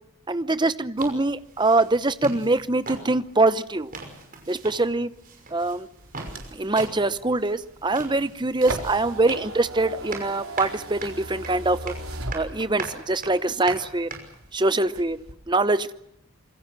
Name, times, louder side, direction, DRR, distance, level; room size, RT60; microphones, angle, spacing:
voice 1, 0.3-3.9 4.5-5.1 5.5-5.9 6.5-11.9 12.3-14.1 14.5-15.2 15.5-15.9, right 2 dB, 20° right, 14 dB, 0.8 m, -23 dB
sound 1, 1.0-14.4, right 3 dB, 40° right, 5.9 m, -40 dB
sound 2, 6.0-13.0 13.5-14.5 14.8-15.3, right 2 dB, 90° right, 4.4 m, -37 dB
27.0 x 23.5 x 6.1 m, 0.80 s
head